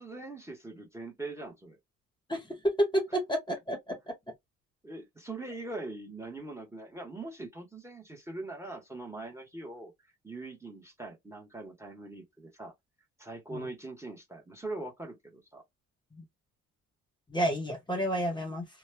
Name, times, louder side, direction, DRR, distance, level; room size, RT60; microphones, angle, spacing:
voice 1, 0.0-1.8 4.8-9.9 10.2-12.7 13.2-15.6, right 2 dB, 10° right, 1.1 m, -42 dB
voice 2, 2.8-4.0 13.5-13.7 16.2-16.3 17.3-18.6, equal, 15° left, 1.2 m, -30 dB
2.9 x 2.2 x 2.2 m
cardioid pair, 90°, 30 cm